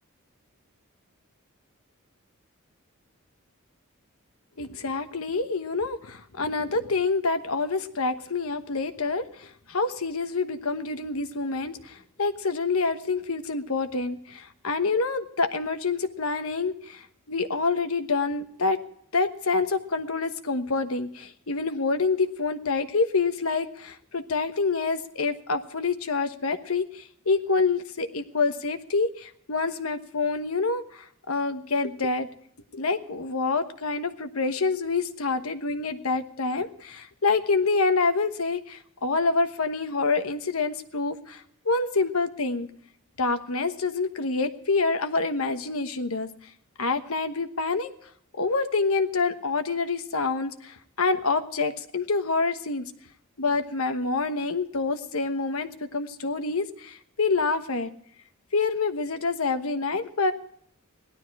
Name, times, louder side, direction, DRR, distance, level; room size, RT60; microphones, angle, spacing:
voice 1, 4.6-18.8 19.1-32.3 32.7-42.7 43.2-46.3 46.8-47.9 48.4-52.9 53.4-57.9 58.5-60.3, left 3 dB, 85° left, 9 dB, 1.2 m, -27 dB
17.0 x 12.0 x 4.7 m, 0.66 s
head